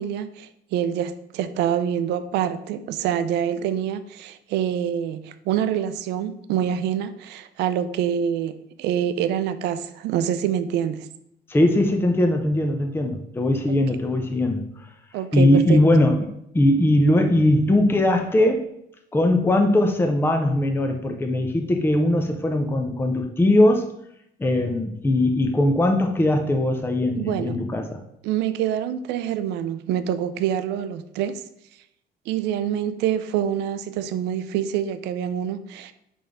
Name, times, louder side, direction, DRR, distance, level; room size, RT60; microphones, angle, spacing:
voice 1, 0.0-11.1 13.7-13.8 15.1-15.8 27.2-27.6 28.2-31.4 32.3-35.9, right 9 dB, 85° right, 11 dB, 0.5 m, -26 dB
voice 2, 11.5-14.6 15.3-18.7 19.1-23.9 24.4-28.0, left 1 dB, 15° left, 4 dB, 0.6 m, -20 dB
5.6 x 5.2 x 3.5 m, 0.79 s
cardioid pair, 110°, 17 cm